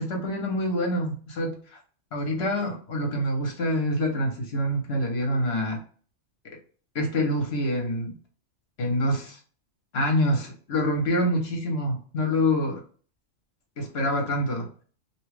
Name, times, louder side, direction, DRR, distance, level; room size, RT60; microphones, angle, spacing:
voice 1, 0.0-1.8 2.1-5.8 6.9-8.2 8.8-9.4 9.9-12.8 13.8-14.7, left 1 dB, 60° left, 2 dB, 1.1 m, -26 dB
2.8 x 2.3 x 3.2 m, 0.43 s
omnidirectional pair, 1.2 m